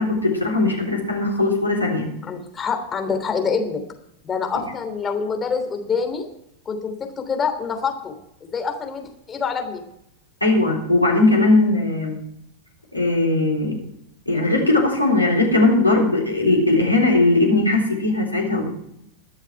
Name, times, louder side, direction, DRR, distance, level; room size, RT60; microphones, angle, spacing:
voice 1, 0.0-2.1 10.4-12.2 12.9-13.8 14.3-18.6, left 2 dB, 90° left, -1 dB, 3.7 m, -19 dB
voice 2, 2.2-3.8 4.2-6.3 6.6-8.1 8.4-9.8, left 5 dB, 20° left, 5 dB, 3.1 m, -26 dB
21.5 x 7.3 x 4.7 m, 0.78 s
figure-of-eight pair, 90°, 0 cm